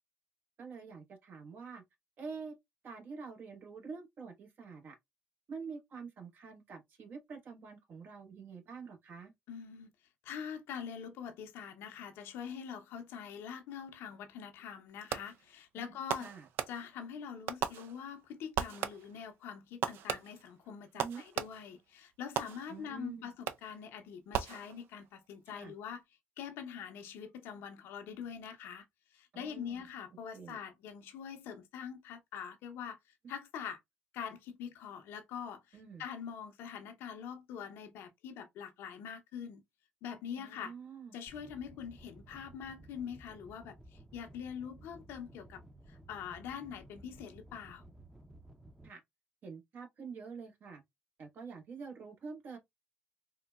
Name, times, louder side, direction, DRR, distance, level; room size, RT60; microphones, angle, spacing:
voice 1, 0.6-1.8 2.2-2.6 2.8-5.0 5.5-9.3 15.8-16.5 20.9-21.2 22.7-23.3 25.5-25.7 29.3-29.8 30.3-30.6 35.7-36.0 40.4-41.1 48.8-49.0 49.4-50.8 51.2-52.6, right 5 dB, 55° right, 0.9 m, -47 dB
voice 2, 9.5-9.9 10.2-16.3 16.7-26.0 26.4-28.8 29.1-33.0 33.3-33.8 34.1-39.6 40.0-40.7 41.1-45.6 45.9-47.8, left 7 dB, 80° left, 0.6 m, -44 dB
Fireworks, 15.1-15.5 16.1-17.1 17.5-18.3 18.6-19.3 19.8-21.8 22.4-23.0 23.5-23.9 24.3-25.1, right 9 dB, 75° right, 0.3 m, -38 dB
sound 1, 41.3-48.9, right 1 dB, 10° right, 0.6 m, -56 dB
3.7 x 2.1 x 2.2 m
supercardioid pair, 75°, 4 cm